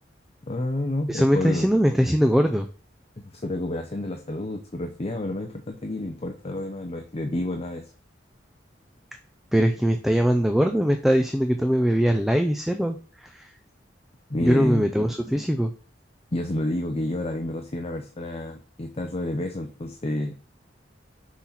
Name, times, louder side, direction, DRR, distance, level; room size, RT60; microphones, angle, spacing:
voice 1, 0.4-1.7 3.2-7.9 14.3-14.9 16.3-20.4, left 1 dB, 35° left, 5 dB, 0.7 m, -29 dB
voice 2, 1.1-2.7 9.5-13.5 14.4-15.7, equal, ahead, 6 dB, 0.5 m, -21 dB
6.1 x 4.1 x 5.8 m, 0.40 s
head